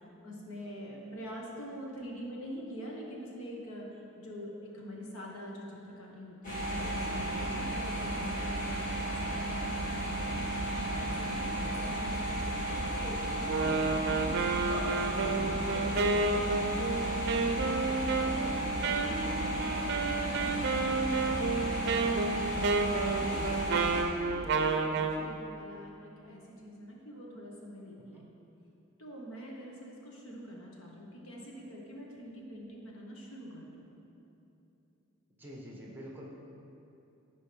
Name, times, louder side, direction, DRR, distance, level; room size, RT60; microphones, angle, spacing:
voice 1, 0.2-10.1 10.7-16.2 16.6-22.6 22.9-28.2 29.0-33.9, equal, 75° left, -2 dB, 1.5 m, -46 dB
sound 1, 6.4-24.0, right 1 dB, 40° left, 2.1 m, -33 dB
voice 2, 11.1-11.5 28.1-28.2 35.4-36.2, equal, 10° right, -4 dB, 1.3 m, -47 dB
Wind instrument woodwind instrument, 13.4-25.2, right 3 dB, 55° right, 0.6 m, -31 dB
15.0 x 5.3 x 3.5 m, 2.9 s
head